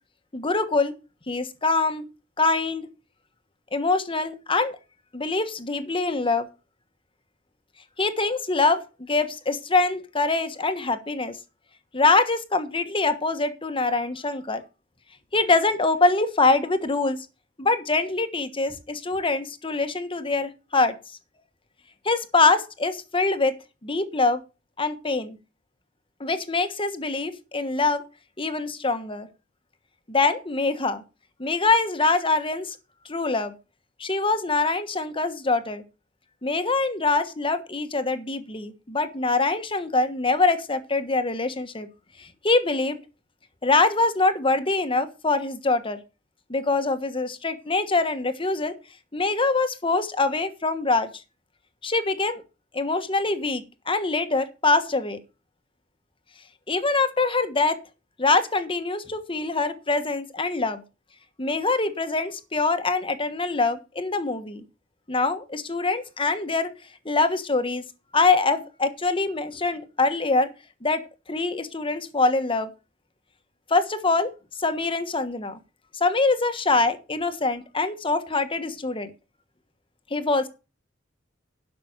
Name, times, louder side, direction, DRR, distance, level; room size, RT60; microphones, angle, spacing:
voice 1, 0.3-0.9 1.3-2.0 2.4-2.9 3.7-4.8 5.1-6.5 8.0-11.4 11.9-14.6 15.3-17.2 17.6-20.9 22.0-23.5 23.8-24.4 24.8-25.4 26.2-28.0 28.4-29.3 30.1-31.0 31.4-32.8 33.1-33.5 34.0-35.8 36.4-41.9 42.2-43.0 43.6-46.0 46.5-48.7 49.1-51.1 51.8-52.4 52.7-55.2 56.7-57.8 58.2-60.8 61.4-64.6 65.1-66.7 67.0-67.8 68.1-70.5 70.8-71.0 71.3-72.7 73.7-74.3 74.6-75.6 75.9-79.1 80.1-80.5, left 3 dB, 30° left, 9 dB, 1.3 m, -24 dB
12.0 x 5.9 x 6.6 m, 0.30 s
head